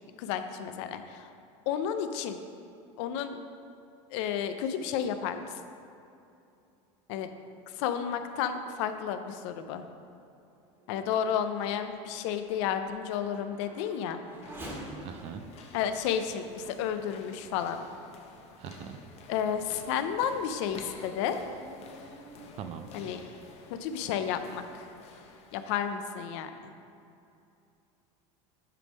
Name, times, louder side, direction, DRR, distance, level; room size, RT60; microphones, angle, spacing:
voice 1, 0.2-1.3 1.7-2.4 3.0-3.4 4.1-5.5 7.1-7.3 7.7-9.9 10.9-14.2 15.7-17.8 19.3-21.4 22.9-23.2 23.7-24.9 25.5-26.5, left 8 dB, 70° left, 9 dB, 0.5 m, -32 dB
Race car auto racing / Accelerating revving vroom, 10.4-18.2 18.9-19.0 19.6-24.3, right 1 dB, 15° right, 1.5 m, -50 dB
sound 1, 14.2-26.2, left 4 dB, 40° left, 0.8 m, -52 dB
voice 2, 15.0-15.4 18.6-19.0 22.6-22.9, right 8 dB, 40° right, 10 dB, 0.4 m, -41 dB
8.3 x 3.5 x 5.3 m, 2.7 s
supercardioid pair, 130°, 16 cm